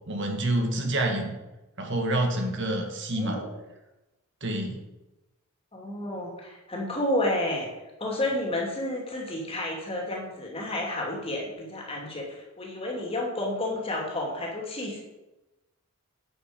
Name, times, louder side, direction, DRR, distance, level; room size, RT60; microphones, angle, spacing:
voice 1, 0.1-1.4 1.8-3.4 4.4-4.8, right 1 dB, 55° right, 3 dB, 1.8 m, -27 dB
voice 2, 3.2-3.5 5.7-7.7 8.0-15.0, left 1 dB, 25° left, -1 dB, 2.6 m, -31 dB
10.0 x 8.8 x 5.1 m, 1.0 s
head